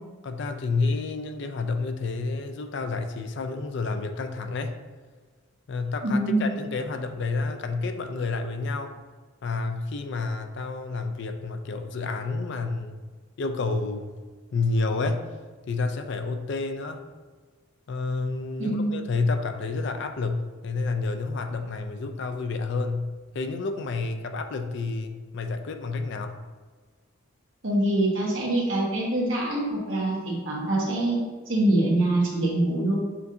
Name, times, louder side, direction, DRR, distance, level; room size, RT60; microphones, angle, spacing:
voice 1, 0.2-4.8 5.7-9.0 9.4-13.0 13.4-14.1 14.5-15.2 15.7-17.0 17.9-26.4, left 3 dB, 60° left, 6 dB, 0.4 m, -29 dB
voice 2, 6.0-6.5 18.6-18.9 27.6-31.2 31.5-32.9, right 1 dB, 65° right, -4 dB, 1.2 m, -24 dB
6.9 x 2.6 x 2.7 m, 1.4 s
head